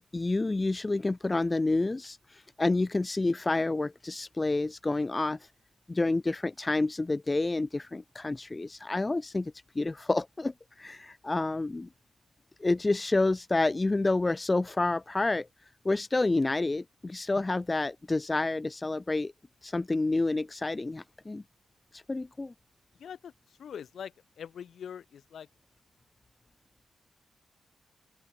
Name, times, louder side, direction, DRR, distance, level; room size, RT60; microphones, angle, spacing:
voice 1, 0.0-5.4 5.9-11.9 12.6-15.5 15.8-19.3 19.6-21.4 21.9-22.5, left 2 dB, 20° left, 0.3 m, -29 dB
voice 2, 23.0-25.5, left 8 dB, 75° left, 1.2 m, -43 dB
open air
wide cardioid pair, 110°, 0 cm